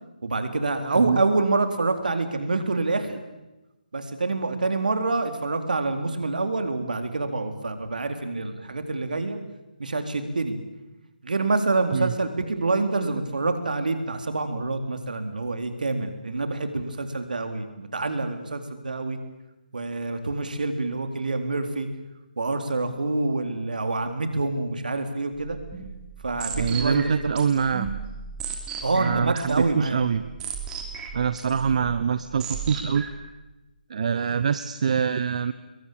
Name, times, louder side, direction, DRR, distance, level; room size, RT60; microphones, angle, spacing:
voice 1, 0.2-3.2 3.9-9.4 9.8-10.6 11.2-19.2 19.7-21.9 22.4-25.6 26.2-27.4 28.8-30.0, right 3 dB, 65° right, 7 dB, 3.9 m, -26 dB
sound 1, 25.4-33.3, right 6 dB, 15° right, 3.2 m, -36 dB
voice 2, 26.6-27.9 29.0-30.2 31.1-33.0 33.9-35.5, right 7 dB, 45° right, 13 dB, 1.0 m, -24 dB
28.0 x 22.0 x 8.8 m, 1.0 s
figure-of-eight pair, 145°, 5 cm